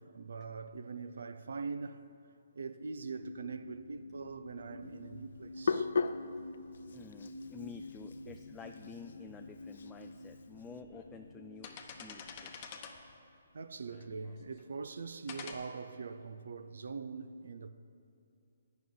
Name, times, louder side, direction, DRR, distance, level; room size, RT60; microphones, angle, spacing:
voice 1, 0.0-2.0 2.5-5.9 6.8-6.9 8.3-8.4 13.5-17.7, right 4 dB, 70° right, 0.5 m, -43 dB
sound 1, 3.2-13.2 13.8-13.9, left 2 dB, 85° left, 0.8 m, -50 dB
Hands, 4.9-10.8, left 5 dB, 65° left, 0.5 m, -38 dB
voice 2, 6.9-12.7, left 5 dB, 10° left, 0.4 m, -50 dB
sound 2, 10.0-10.1 10.7-11.1 11.4-13.1 13.9-14.6 15.3-15.5, left 6 dB, 30° left, 0.9 m, -48 dB
9.1 x 6.3 x 8.6 m
hypercardioid pair, 150°, 0 cm